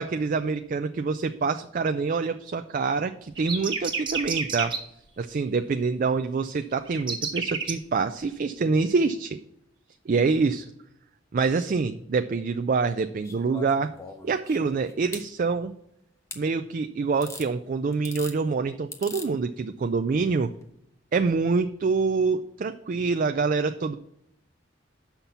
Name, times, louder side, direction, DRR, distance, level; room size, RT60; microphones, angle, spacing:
voice 1, 0.0-4.8 5.2-9.4 10.1-10.7 11.3-13.9 14.2-15.7 16.4-20.5 21.1-23.9, right 4 dB, 45° right, 8 dB, 0.3 m, -26 dB
sound 1, 3.4-4.8 6.9-7.7, right 5 dB, 25° right, 1.1 m, -29 dB
sound 2, 13.2-15.3 16.3-16.4 17.2-17.5 17.9-18.4 18.9-19.3 20.5-20.6, left 4 dB, 15° left, 0.8 m, -41 dB
7.1 x 5.8 x 6.7 m, 0.78 s
head